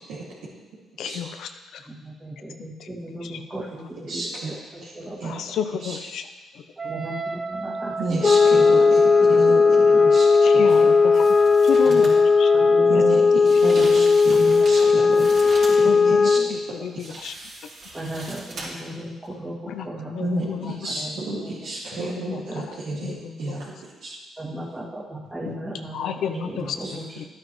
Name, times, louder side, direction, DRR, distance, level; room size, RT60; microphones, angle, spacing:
voice 1, 1.0-1.8 2.8-2.9 3.2-3.4 5.2-6.3 10.4-11.3 11.6-12.1 12.4-12.5 12.9-13.1 13.6-13.7 15.8-17.3 19.7-19.9 20.1-20.8 22.0-22.4 23.0-23.5 25.9-27.2, left 8 dB, 75° left, 8 dB, 0.6 m, -32 dB
voice 2, 1.9-4.2 4.7-5.3 6.9-8.3 8.6-8.7 9.2-10.0 10.8-10.9 11.8-12.2 12.5-13.0 13.4-14.1 14.6-15.1 15.7-15.8 16.3-16.5 17.9-19.6 19.8-21.5 22.3-22.6 24.4-27.2, right 1 dB, 15° right, -8 dB, 2.0 m, -36 dB
voice 3, 4.1-4.9 5.2-5.4 5.8-6.0 8.0-9.6 10.0-10.3 10.5-10.6 12.9-15.3 16.0-16.6 17.1-17.2 20.2-23.7 24.0-24.1 26.3-26.4 26.8-26.9, right 2 dB, 85° right, -8 dB, 2.1 m, -31 dB
Wind instrument woodwind instrument, 6.8-13.4, right 3 dB, 30° right, 0.5 m, -32 dB
sound 1, 8.2-16.6, left 4 dB, 30° left, 0.5 m, -16 dB
sound 2, 10.7-10.8 11.1-12.2 13.4-15.9 17.0-18.9 19.2-19.3, right 2 dB, 60° right, 3.1 m, -39 dB
11.5 x 8.9 x 3.1 m, 1.2 s
cardioid pair, 90°, 0 cm